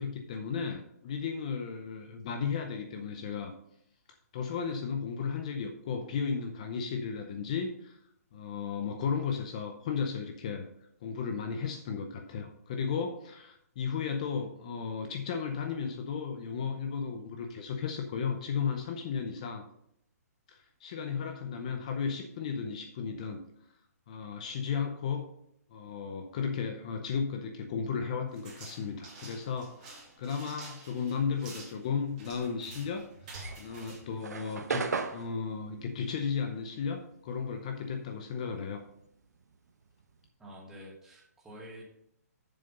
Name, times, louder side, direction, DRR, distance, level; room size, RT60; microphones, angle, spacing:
voice 1, 0.0-3.5 4.1-8.0 8.3-10.7 11.0-19.7 20.5-23.4 24.1-25.3 25.7-33.1 33.6-34.8 35.1-38.8, left 6 dB, 25° left, 5 dB, 0.7 m, -34 dB
sound 1, 28.3-34.9, right 3 dB, 25° right, 2.5 m, -49 dB
sound 2, 33.3-38.0 38.3-40.3, right 5 dB, 80° right, 1.1 m, -38 dB
voice 2, 40.4-41.8, equal, 5° right, -3 dB, 1.0 m, -48 dB
7.2 x 6.9 x 5.4 m, 0.72 s
hypercardioid pair, 175°, 9 cm